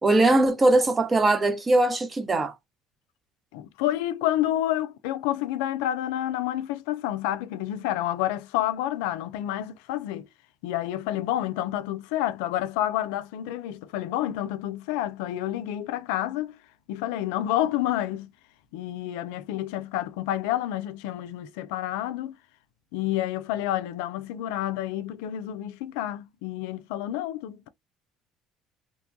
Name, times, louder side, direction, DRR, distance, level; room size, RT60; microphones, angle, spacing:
voice 1, 0.0-2.5, right 2 dB, 25° right, 0.8 m, -21 dB
voice 2, 3.5-10.3 10.6-16.6 16.9-18.3 18.7-22.3 22.9-27.7, left 13 dB, 75° left, 0.3 m, -29 dB
2.9 x 2.2 x 2.5 m
hypercardioid pair, 65°, 0 cm